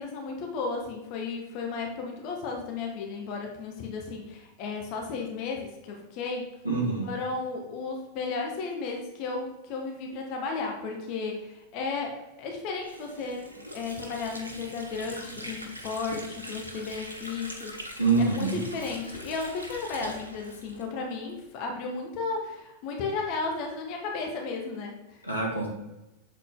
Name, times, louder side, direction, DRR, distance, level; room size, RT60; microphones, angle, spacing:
voice 1, 0.0-6.5 7.0-13.4 13.7-25.2, left 4 dB, 45° left, 1 dB, 1.1 m, -34 dB
voice 2, 6.6-7.0 18.0-18.6 25.2-25.7, right 3 dB, 90° left, -3 dB, 1.6 m, -25 dB
Water / Sink (filling or washing), 12.8-21.4, equal, 80° right, 0.9 m, -42 dB
7.4 x 4.0 x 3.7 m, 0.99 s
figure-of-eight pair, 90°, 0 cm